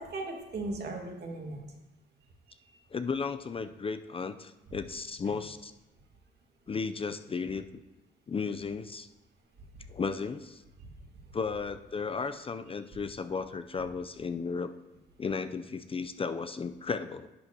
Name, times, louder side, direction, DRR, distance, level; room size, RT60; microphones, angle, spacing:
voice 1, 0.0-1.6 2.6-2.8 4.7-4.8 5.2-5.3 9.7-9.8 10.8-10.9 11.2-11.3, right 2 dB, 55° right, 1 dB, 1.9 m, -38 dB
voice 2, 2.9-5.7 6.7-7.7 8.3-9.1 9.9-10.6 11.3-14.7 15.2-17.3, left 5 dB, 30° left, 10 dB, 0.4 m, -34 dB
11.0 x 7.9 x 2.8 m, 1.0 s
cardioid pair, 90°, 20 cm